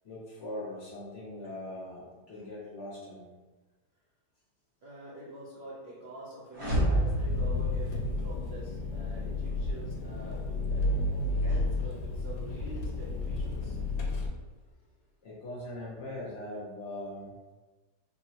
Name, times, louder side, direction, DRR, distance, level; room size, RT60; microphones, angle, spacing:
voice 1, 0.0-3.3 11.5-11.6 15.2-17.3, left 1 dB, 55° left, -6 dB, 0.9 m, -41 dB
voice 2, 4.8-13.8, right 1 dB, 70° right, -7 dB, 0.6 m, -46 dB
sound 1, 6.5-8.7, right 1 dB, 30° right, 0.6 m, -29 dB
Engine, 7.2-14.3, left 2 dB, 75° left, 1.1 m, -32 dB
3.8 x 2.0 x 2.7 m, 1.2 s
omnidirectional pair, 1.8 m